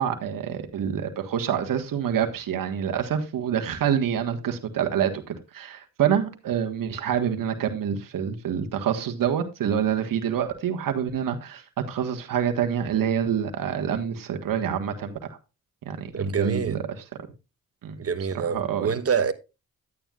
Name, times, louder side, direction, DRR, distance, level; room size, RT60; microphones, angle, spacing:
voice 1, 0.0-11.6 11.9-15.2 15.8-16.8 17.8-18.0 18.4-18.9, right 8 dB, 70° right, 1.5 m, -27 dB
voice 2, 16.1-16.8 18.0-19.3, right 6 dB, 40° right, 1.1 m, -26 dB
11.0 x 9.0 x 2.4 m
cardioid pair, 60°, 35 cm